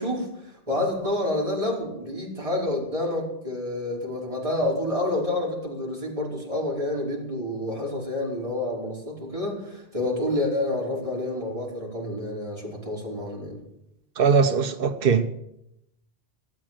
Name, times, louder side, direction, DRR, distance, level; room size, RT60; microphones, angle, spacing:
voice 1, 0.0-13.6, left 1 dB, 35° right, 5.1 m, -28 dB
voice 2, 14.2-15.3, right 5 dB, 65° right, 1.1 m, -20 dB
17.5 x 8.8 x 9.2 m
omnidirectional pair, 1.0 m